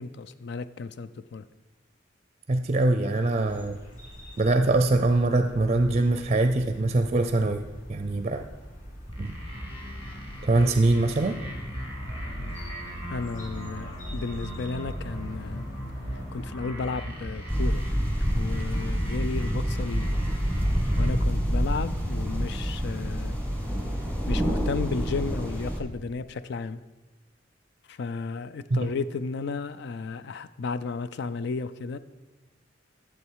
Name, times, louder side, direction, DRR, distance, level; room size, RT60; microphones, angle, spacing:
voice 1, 0.0-1.4 12.3-12.6 13.1-15.7 16.3-17.8 18.3-20.2 21.0-23.4 24.3-26.8 27.9-32.0, left 4 dB, 60° left, 14 dB, 0.4 m, -33 dB
voice 2, 2.5-3.8 4.4-7.6 7.9-8.4 9.2-9.4 10.4-11.4 28.7-28.9, right 2 dB, 35° right, 7 dB, 0.5 m, -23 dB
sound 1, 3.5-16.4, equal, 45° left, 2.9 m, -45 dB
sound 2, 9.1-21.1, equal, 30° left, 2.4 m, -37 dB
sound 3, 17.5-25.8, equal, 10° left, 1.5 m, -27 dB
11.5 x 7.3 x 4.6 m, 1.2 s
head